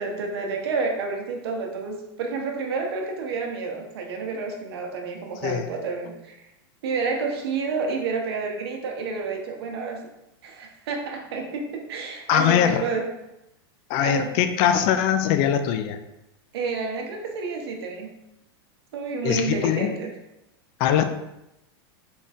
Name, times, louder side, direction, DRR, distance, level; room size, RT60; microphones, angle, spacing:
voice 1, 0.0-6.4 6.8-10.0 10.4-13.1 14.0-14.4 16.5-18.1 18.9-20.1, right 4 dB, 75° right, 2 dB, 0.8 m, -29 dB
voice 2, 12.3-12.8 13.9-16.0 19.2-19.9 20.8-21.0, left 9 dB, 45° left, 8 dB, 0.4 m, -21 dB
3.6 x 2.4 x 4.2 m, 0.91 s
supercardioid pair, 140°, 13 cm